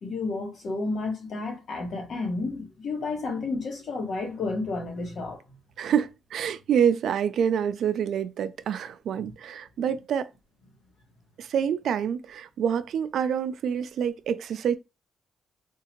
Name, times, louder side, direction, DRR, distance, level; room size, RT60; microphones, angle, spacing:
voice 1, 0.0-5.4 9.2-9.3, left 3 dB, 65° left, 1.3 m, -31 dB
voice 2, 5.8-10.3 11.4-14.8, right 8 dB, 75° right, 0.3 m, -27 dB
3.7 x 2.5 x 2.9 m
cardioid pair, 100°, 0 cm